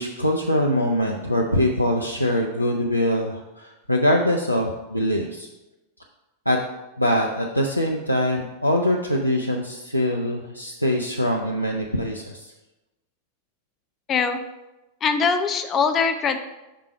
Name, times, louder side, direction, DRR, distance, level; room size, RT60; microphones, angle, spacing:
voice 1, 0.0-5.5 6.5-6.6 7.0-12.5, left 1 dB, 90° left, -1 dB, 0.4 m, -23 dB
voice 2, 14.1-14.4 15.0-16.4, left 5 dB, 25° left, 8 dB, 0.5 m, -22 dB
5.6 x 3.8 x 4.9 m, 1.0 s
figure-of-eight pair, 90°, 0 cm